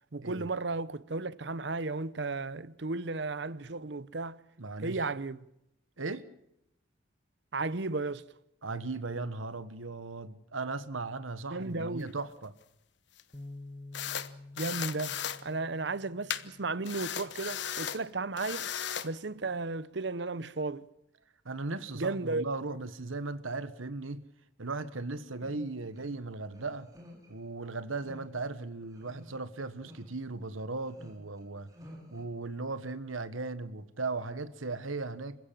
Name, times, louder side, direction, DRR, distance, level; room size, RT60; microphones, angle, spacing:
voice 1, 0.1-4.4 4.8-5.4 7.5-8.2 11.5-12.2 14.6-15.2 15.4-18.7 19.0-20.9 21.9-22.5, right 3 dB, 60° right, 0.8 m, -34 dB
voice 2, 4.6-5.0 6.0-6.2 8.6-12.5 21.4-24.2 24.6-26.9 27.3-31.7 32.1-35.4, right 3 dB, 85° right, 1.4 m, -37 dB
sound 1, 11.8-12.1 13.2-13.3 13.9-14.3 14.6-15.4 16.3-16.4 16.9-18.0 18.4-19.1, left 9 dB, 60° left, 1.0 m, -36 dB
Bass guitar, 13.3-19.6, left 2 dB, 25° left, 1.1 m, -51 dB
sound 2, 25.3-26.1 26.5-27.3 27.9-28.3 28.8-29.5 29.9-30.1 30.7-32.2, equal, 20° right, 4.9 m, -52 dB
27.5 x 15.5 x 7.6 m
head